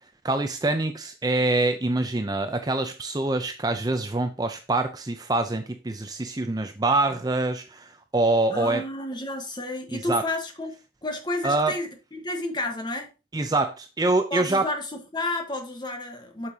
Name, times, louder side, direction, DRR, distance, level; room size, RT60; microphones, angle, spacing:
voice 1, 0.2-8.8 9.9-10.2 11.4-11.7 13.3-14.7, right 2 dB, 20° right, 0.5 m, -25 dB
voice 2, 8.5-10.7 11.0-13.1 14.3-16.5, left 2 dB, 25° left, 1.2 m, -31 dB
8.6 x 6.5 x 2.8 m
head